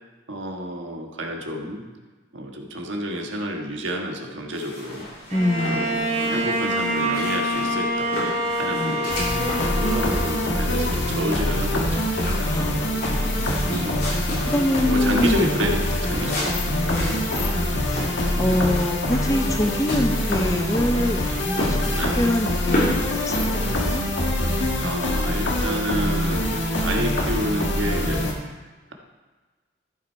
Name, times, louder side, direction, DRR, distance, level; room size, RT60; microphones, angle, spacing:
voice 1, 0.3-1.8 2.3-5.1 5.7-8.1 8.5-9.1 9.7-12.1 13.6-14.0 14.9-17.1 18.3-18.6 21.9-22.2 24.8-28.3, equal, 85° right, 2 dB, 1.4 m, -29 dB
sound 1, 4.5-23.7, left 1 dB, 55° left, 3.2 m, -33 dB
voice 2, 5.3-6.3 8.7-9.2 9.6-9.9 12.5-13.2 14.4-15.5 16.7-17.5 17.8-24.0, left 1 dB, 15° left, 6 dB, 0.6 m, -26 dB
Bowed string instrument, 5.3-11.1, equal, 40° right, 2.7 m, -26 dB
sound 2, 9.1-28.3, left 1 dB, 75° left, 1.7 m, -24 dB
14.5 x 6.0 x 4.6 m, 1.3 s
head